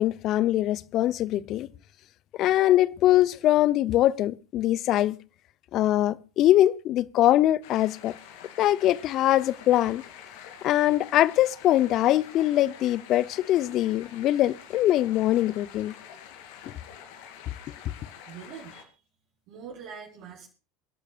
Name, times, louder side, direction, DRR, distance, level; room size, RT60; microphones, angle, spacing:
voice 1, 0.0-1.7 2.4-5.2 5.7-8.1 8.6-10.0 10.6-15.9, left 13 dB, 50° left, 0.8 m, -22 dB
sound 1, 7.6-18.8, left 8 dB, 70° left, 3.3 m, -47 dB
voice 2, 18.3-18.9 19.5-20.5, right 6 dB, 55° right, 4.7 m, -43 dB
28.0 x 11.5 x 2.5 m
hypercardioid pair, 80°, 0 cm